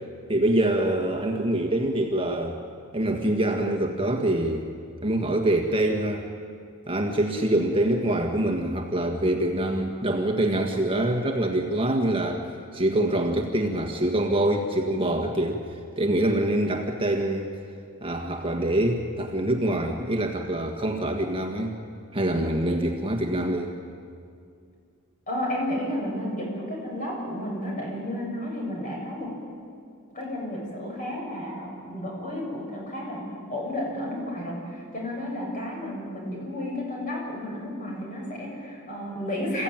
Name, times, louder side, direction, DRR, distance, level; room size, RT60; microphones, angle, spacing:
voice 1, 0.3-2.6 2.9-4.7 5.0-6.2 6.9-15.6 16.0-17.5 18.0-21.8 22.1-23.7, right 1 dB, 25° right, 2 dB, 1.7 m, -25 dB
voice 2, 25.3-29.3 30.1-39.6, left 1 dB, 40° left, -2 dB, 7.5 m, -32 dB
28.0 x 15.5 x 9.0 m, 2.3 s
head